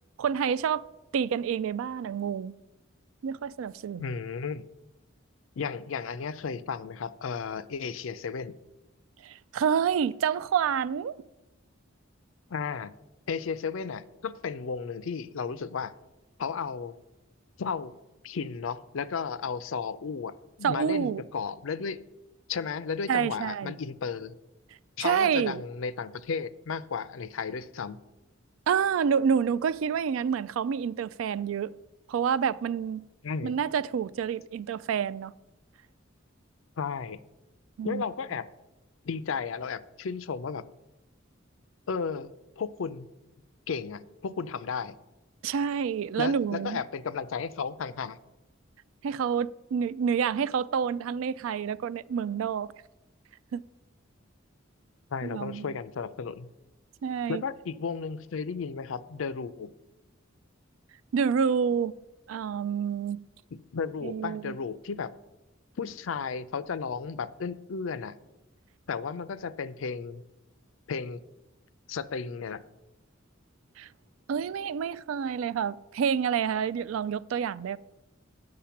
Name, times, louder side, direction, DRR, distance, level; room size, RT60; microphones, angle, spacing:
voice 1, 0.2-0.9 1.1-2.5 3.2-4.1 9.2-11.2 20.6-21.2 23.1-23.8 25.0-25.6 28.7-31.7 32.1-33.0 33.4-35.3 37.8-38.0 45.4-46.8 49.0-52.7 53.5-53.6 55.2-55.8 57.0-57.4 61.1-61.9 62.3-63.2 64.0-64.6 73.8-73.9 74.3-77.8, right 7 dB, 85° right, 0.3 m, -28 dB
voice 2, 4.0-4.6 5.6-8.5 12.5-12.9 13.3-15.9 16.4-17.0 17.6-17.9 18.2-22.0 22.5-24.4 25.0-28.0 33.2-33.6 36.8-37.2 37.8-38.5 39.0-40.6 41.9-43.1 43.7-45.0 46.2-48.2 55.1-56.5 57.3-59.7 63.5-65.1 65.8-68.2 68.9-70.2 70.9-71.2 71.9-72.6, left 5 dB, 80° left, 0.5 m, -34 dB
8.6 x 6.6 x 5.8 m
head